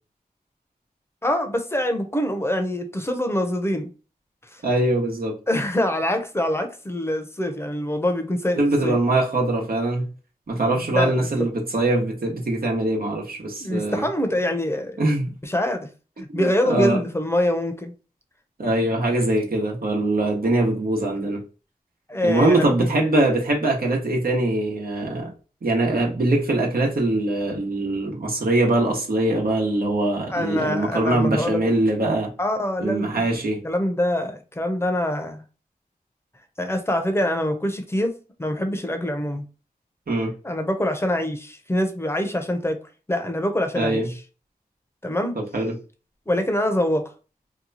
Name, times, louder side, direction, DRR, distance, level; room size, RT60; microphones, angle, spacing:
voice 1, 1.2-3.9 4.5-4.6 5.5-9.0 10.8-11.5 13.6-15.0 15.4-15.9 16.2-17.9 22.1-22.9 30.3-31.6 32.4-33.3 33.6-35.4 36.6-39.4 40.4-42.8 43.1-44.0 45.0-45.4 46.3-47.1, left 1 dB, 15° left, 0.7 m, -25 dB
voice 2, 4.6-5.4 8.5-10.1 10.5-14.1 15.0-15.3 16.3-17.0 18.6-21.4 22.2-25.3 25.6-32.3 32.8-33.6 40.1-40.3 43.8-44.1 45.4-45.7, right 2 dB, 80° right, 1.1 m, -22 dB
2.9 x 2.3 x 4.0 m
wide cardioid pair, 70°, 15 cm